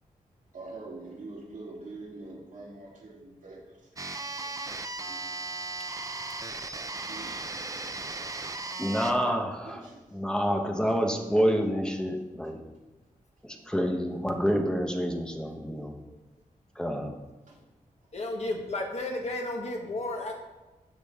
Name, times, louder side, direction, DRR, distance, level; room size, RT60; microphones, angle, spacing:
voice 1, 0.5-3.8 4.3-4.5 5.0-5.2 7.1-7.3 9.6-10.1 11.1-11.3 13.5-13.7 17.5-17.6, right 3 dB, 65° right, -5 dB, 3.5 m, -44 dB
sound 1, 4.0-9.1, right 3 dB, 25° right, 0.6 m, -36 dB
voice 2, 8.8-12.6 13.4-16.0 16.8-17.1, equal, 5° left, 3 dB, 1.1 m, -28 dB
voice 3, 18.1-20.4, left 2 dB, 50° left, 1 dB, 1.7 m, -33 dB
15.5 x 6.2 x 3.7 m, 1.1 s
wide cardioid pair, 140°, 14 cm